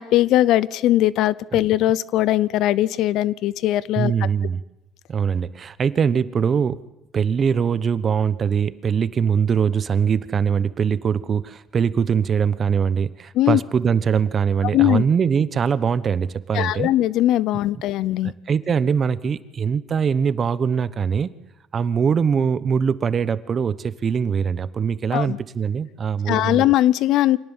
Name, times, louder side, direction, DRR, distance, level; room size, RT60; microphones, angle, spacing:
voice 1, 0.0-4.1 13.3-13.6 14.7-15.0 16.5-18.3 25.1-25.4 26.3-27.4, left 14 dB, 75° left, 21 dB, 0.7 m, -20 dB
voice 2, 4.0-4.6 5.1-6.8 7.1-16.9 18.2-21.3 21.7-26.6, right 7 dB, 40° right, 16 dB, 1.1 m, -22 dB
25.5 x 18.5 x 7.4 m, 0.93 s
cardioid pair, 105°, 0 cm